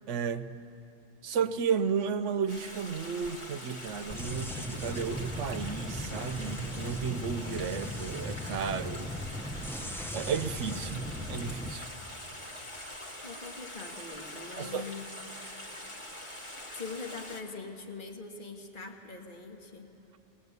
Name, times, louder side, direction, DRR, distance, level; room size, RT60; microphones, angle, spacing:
voice 1, 0.1-0.5 1.2-9.1 10.1-11.9 14.6-14.9, right 6 dB, 85° right, 11 dB, 1.1 m, -33 dB
Stream, 2.5-17.4, left 1 dB, 25° left, 1.8 m, -44 dB
sound 1, 4.1-11.7, left 1 dB, 5° left, 0.5 m, -38 dB
voice 2, 13.2-15.2 16.7-19.9, left 4 dB, 45° left, 2 dB, 1.7 m, -42 dB
21.5 x 19.0 x 8.2 m, 2.9 s
omnidirectional pair, 1.2 m